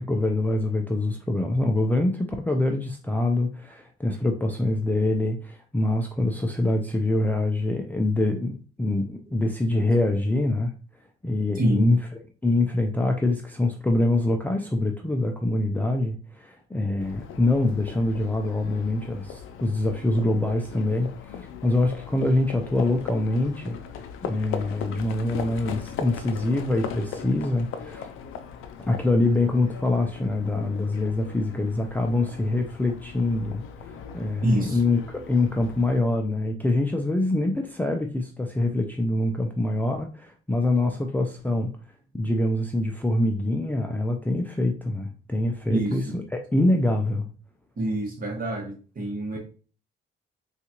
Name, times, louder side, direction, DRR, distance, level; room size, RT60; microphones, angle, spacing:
voice 1, 0.0-10.7 11.2-12.0 12.4-23.8 24.2-28.1 28.8-41.7 42.1-47.3, left 2 dB, 10° left, 0.4 m, -25 dB
voice 2, 11.5-12.0 34.4-34.8 45.7-46.2 47.8-49.4, right 1 dB, 45° right, 1.2 m, -26 dB
Livestock farm animals working animals, 17.0-36.0, left 7 dB, 80° left, 0.4 m, -39 dB
3.7 x 2.4 x 2.9 m
cardioid pair, 90°, 21 cm